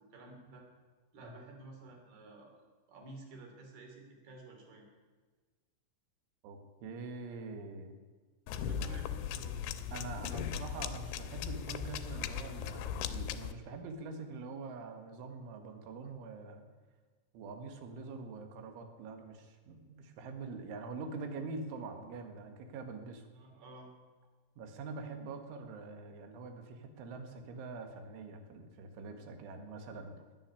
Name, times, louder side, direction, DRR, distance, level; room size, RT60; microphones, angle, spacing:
voice 1, 0.1-0.7 1.1-2.6 2.9-4.9 8.5-9.6 23.3-23.9, right 2 dB, 55° right, 2 dB, 4.6 m, -52 dB
voice 2, 6.4-7.9 8.8-8.9 9.9-16.6 17.3-23.3 24.6-30.2, right 4 dB, 75° right, 6 dB, 4.0 m, -44 dB
sound 1, 8.5-13.5, left 8 dB, 85° left, 3.3 m, -38 dB
20.0 x 7.4 x 9.7 m, 1.4 s
omnidirectional pair, 5.8 m